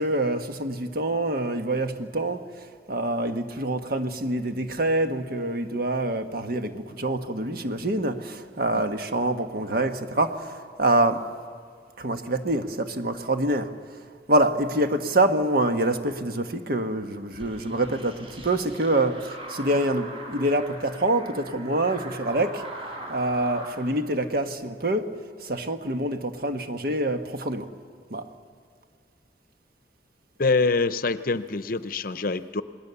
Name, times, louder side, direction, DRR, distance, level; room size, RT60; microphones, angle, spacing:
voice 1, 0.0-11.2 12.0-13.8 14.3-22.6 23.1-25.1 25.4-27.7 28.1-28.3, right 1 dB, 55° right, 1.4 m, -26 dB
sound 1, 17.3-23.8, right 1 dB, 35° right, 4.3 m, -41 dB
voice 2, 30.4-32.6, left 3 dB, 55° left, 0.7 m, -25 dB
28.0 x 20.0 x 7.0 m
head